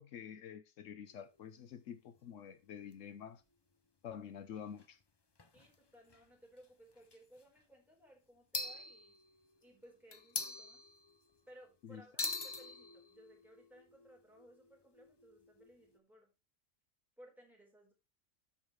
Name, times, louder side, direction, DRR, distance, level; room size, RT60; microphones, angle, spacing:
voice 1, 0.0-3.4 4.0-5.0 11.8-12.0, left 8 dB, 75° left, 1.1 m, -48 dB
sound 1, 1.1-2.2 2.9-3.0 3.2-3.3 4.8-4.9 5.4-5.7 6.1-6.3 7.0-7.4 8.5-9.6 10.1-11.4 12.2-16.0, left 3 dB, 30° left, 0.5 m, -44 dB
voice 2, 5.5-9.2 9.6-10.9 11.5-16.3 17.2-17.9, equal, ahead, 4.5 m, -61 dB
13.0 x 5.8 x 3.2 m
omnidirectional pair, 1.3 m